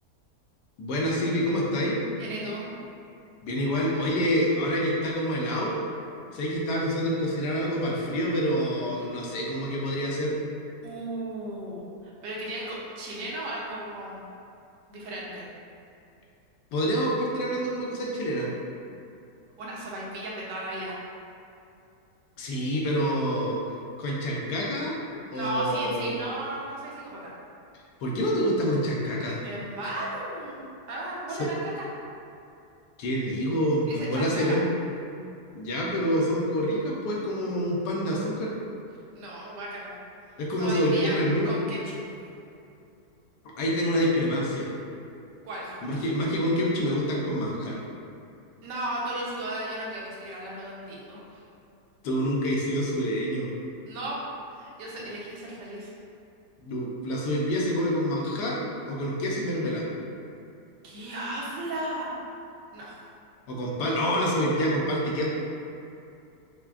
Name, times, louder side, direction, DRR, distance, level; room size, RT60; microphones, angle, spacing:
voice 1, 0.8-2.0 3.4-5.8 6.3-10.4 16.7-18.5 22.4-23.6 24.0-26.2 28.0-29.4 31.4-31.5 33.0-34.7 35.5-38.5 40.4-41.6 43.6-44.7 45.8-47.8 52.0-53.5 56.6-58.6 58.8-59.8 63.5-65.3, equal, 80° left, -3 dB, 1.3 m, -27 dB
voice 2, 2.2-2.7 10.8-14.2 14.9-15.5 19.6-21.0 25.3-27.3 29.4-31.8 33.9-34.6 39.1-40.0 40.6-41.1 41.4-42.0 45.4-45.8 48.6-51.4 53.9-54.2 54.5-55.9 60.8-62.2 62.7-63.0, right 1 dB, 90° right, -5 dB, 1.4 m, -35 dB
5.7 x 2.2 x 2.4 m, 2.6 s
omnidirectional pair, 1.8 m